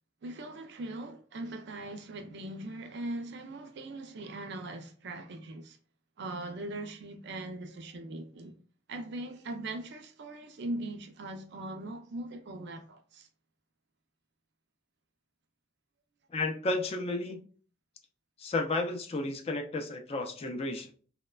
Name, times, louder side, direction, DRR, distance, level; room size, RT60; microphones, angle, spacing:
voice 1, 0.2-5.8 6.2-8.5 8.9-13.3, right 2 dB, 55° right, 0.4 m, -40 dB
voice 2, 16.3-17.4 18.4-21.0, left 2 dB, 30° left, 0.3 m, -32 dB
3.0 x 2.1 x 2.2 m
head